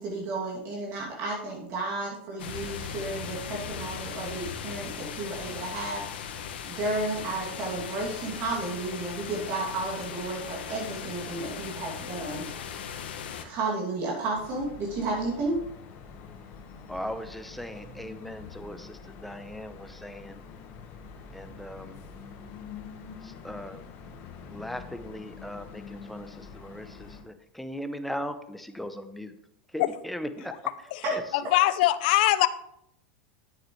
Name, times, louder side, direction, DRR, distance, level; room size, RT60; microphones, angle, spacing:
voice 1, 0.0-6.4 6.7-12.7 13.4-15.6 31.0-31.2, right 2 dB, 45° right, -3 dB, 2.7 m, -32 dB
sound 1, 2.4-13.4, left 7 dB, 90° left, 1.2 m, -38 dB
sound 2, 14.3-27.2, left 5 dB, 45° left, 1.6 m, -46 dB
voice 2, 16.9-20.4 21.3-22.0 23.2-23.8 24.5-29.3 29.7-30.5 31.1-31.2, equal, ahead, 8 dB, 0.8 m, -38 dB
voice 3, 31.3-32.5, left 15 dB, 65° left, 14 dB, 0.6 m, -22 dB
9.9 x 8.6 x 3.3 m, 0.76 s
supercardioid pair, 135°, 5 cm